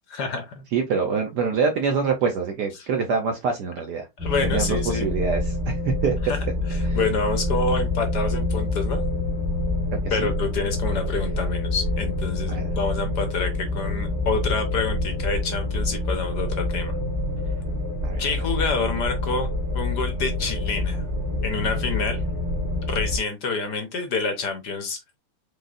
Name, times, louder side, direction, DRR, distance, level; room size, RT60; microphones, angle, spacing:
voice 1, 0.1-0.7 2.8-2.9 4.2-5.1 6.2-6.4 6.7-9.0 10.1-16.9 18.2-19.5 19.7-21.0 21.4-22.2 22.9-25.2, left 4 dB, 60° left, 1.2 m, -27 dB
voice 2, 0.7-4.1 4.4-6.4 6.8-7.0 10.0-10.3 12.5-12.7 18.0-18.2, right 5 dB, 70° right, 1.0 m, -25 dB
sound 1, 4.2-23.2, left 2 dB, 10° right, 0.9 m, -26 dB
5.1 x 4.0 x 2.4 m
omnidirectional pair, 2.4 m